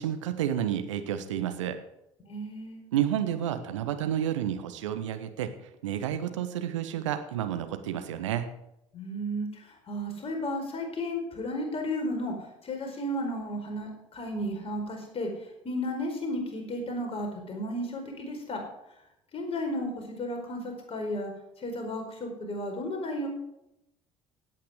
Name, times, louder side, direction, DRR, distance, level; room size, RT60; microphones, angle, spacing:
voice 1, 0.0-1.8 2.9-5.5 5.8-8.5, right 10 dB, 70° right, 8 dB, 1.2 m, -30 dB
voice 2, 2.3-2.8 8.9-12.3 12.6-15.3 15.6-18.6 19.3-21.3 21.6-23.3, equal, 35° left, 2 dB, 4.6 m, -33 dB
16.5 x 9.1 x 5.0 m, 0.86 s
figure-of-eight pair, 60°, 16 cm